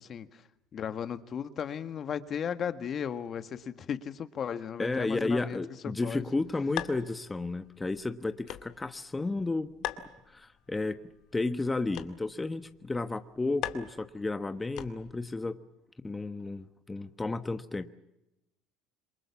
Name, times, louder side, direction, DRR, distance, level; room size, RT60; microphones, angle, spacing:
voice 1, 0.1-0.4 0.7-5.6 5.8-6.2, left 8 dB, 40° left, 1.5 m, -35 dB
voice 2, 4.8-9.7 10.0-11.0 11.3-15.6 16.0-17.9, left 3 dB, 15° left, 1.2 m, -32 dB
sound 1, 6.0-15.3, left 12 dB, 65° left, 2.1 m, -44 dB
27.5 x 23.0 x 7.3 m
supercardioid pair, 95°, 0 cm